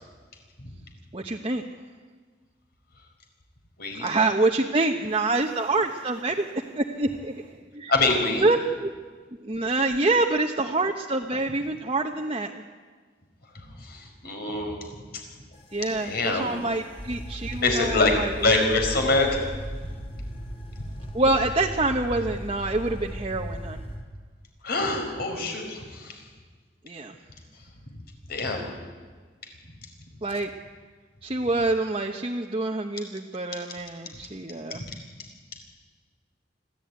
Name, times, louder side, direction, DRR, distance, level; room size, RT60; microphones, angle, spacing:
voice 1, 1.1-1.6 4.0-7.9 8.4-8.9 9.4-12.6 15.7-18.8 21.1-23.8 26.8-27.1 30.2-30.5 31.2-34.8, right 2 dB, 30° right, 1 dB, 1.0 m, -26 dB
voice 2, 7.9-8.4 13.5-14.8 16.0-16.5 17.6-19.5 24.6-26.2 28.3-28.7 34.1-34.2 34.7-34.8, left 3 dB, 60° left, 3 dB, 5.0 m, -25 dB
sound 1, 15.5-24.0, equal, 30° left, 3.0 m, -37 dB
25.0 x 15.5 x 9.5 m, 1.5 s
head